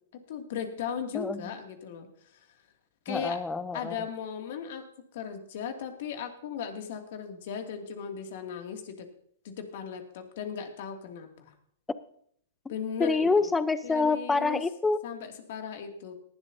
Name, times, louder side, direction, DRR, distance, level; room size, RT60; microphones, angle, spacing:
voice 1, 0.3-2.5 3.0-3.4 3.7-4.9 5.1-9.1 9.4-11.5 12.7-13.3 13.8-14.6 15.0-16.1, left 7 dB, 55° left, 4 dB, 2.5 m, -37 dB
voice 2, 3.1-4.0 12.6-12.7 13.0-15.0, left 4 dB, 10° left, 14 dB, 0.8 m, -27 dB
18.5 x 11.5 x 2.8 m, 0.65 s
hypercardioid pair, 120°, 0 cm